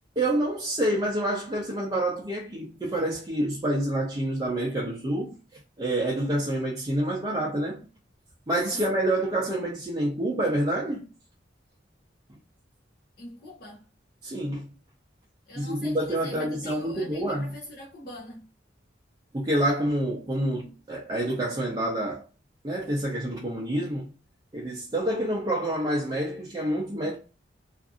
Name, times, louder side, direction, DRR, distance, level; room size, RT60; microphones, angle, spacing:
voice 1, 0.2-5.3 5.8-7.8 8.5-11.1 14.2-14.7 15.6-17.5 19.3-22.3 22.6-24.1 24.5-27.2, right 1 dB, 20° right, 0.5 m, -27 dB
voice 2, 13.2-13.9 15.5-18.5, left 1 dB, 50° left, 0.6 m, -43 dB
2.5 x 2.5 x 2.4 m
head